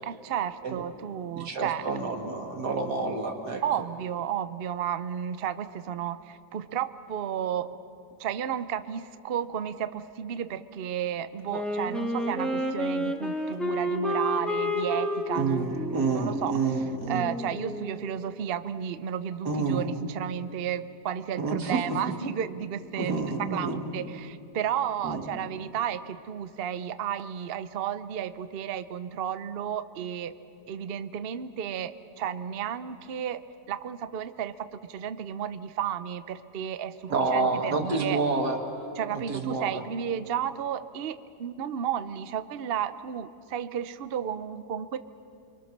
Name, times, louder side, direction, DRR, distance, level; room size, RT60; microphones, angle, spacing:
voice 1, 0.0-1.9 3.6-7.8 8.2-30.3 30.7-33.4 33.7-38.2 39.0-45.0, right 9 dB, 55° right, 13 dB, 0.6 m, -33 dB
voice 2, 1.3-3.6 15.3-17.3 19.4-19.9 21.4-22.0 23.0-23.8 25.0-25.2 37.1-38.6 39.1-39.8, right 4 dB, 75° right, 3 dB, 2.6 m, -29 dB
Wind instrument woodwind instrument, 11.5-18.1, equal, ahead, 1.7 m, -30 dB
29.0 x 23.5 x 6.6 m, 2.6 s
omnidirectional pair, 1.7 m